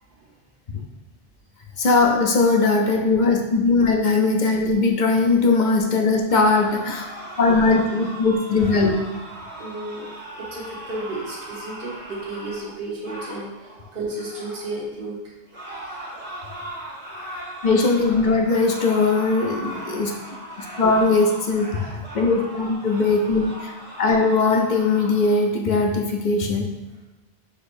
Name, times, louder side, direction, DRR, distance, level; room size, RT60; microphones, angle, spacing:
voice 1, 1.8-7.1 7.4-8.9 17.6-20.1 20.6-23.7 24.0-26.7, left 3 dB, 55° left, 1 dB, 0.7 m, -20 dB
sound 1, 6.3-14.8 15.5-25.4, right 1 dB, 85° right, 1.5 m, -38 dB
voice 2, 9.6-15.3, right 2 dB, 60° right, -4 dB, 1.2 m, -33 dB
6.4 x 3.0 x 2.5 m, 1.1 s
omnidirectional pair, 1.0 m